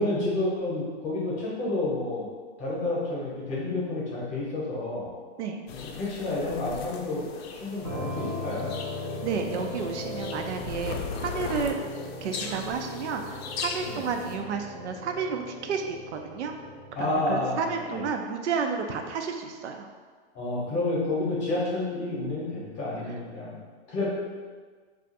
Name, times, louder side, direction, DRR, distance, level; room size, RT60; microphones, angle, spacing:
voice 1, 0.0-2.3 2.6-5.1 5.9-7.2 7.5-8.7 13.8-14.0 17.0-18.0 20.3-23.6 23.9-24.1, left 2 dB, 20° left, -6 dB, 0.8 m, -30 dB
sound 1, 5.7-14.4, left 5 dB, 65° left, 0.5 m, -38 dB
sound 2, 7.8-17.4, left 1 dB, 25° right, 0.5 m, -38 dB
voice 2, 9.2-11.8 12.2-16.5 17.0-19.9, right 6 dB, 85° right, 4 dB, 0.5 m, -31 dB
2.4 x 2.4 x 3.9 m, 1.5 s
hypercardioid pair, 155°, 34 cm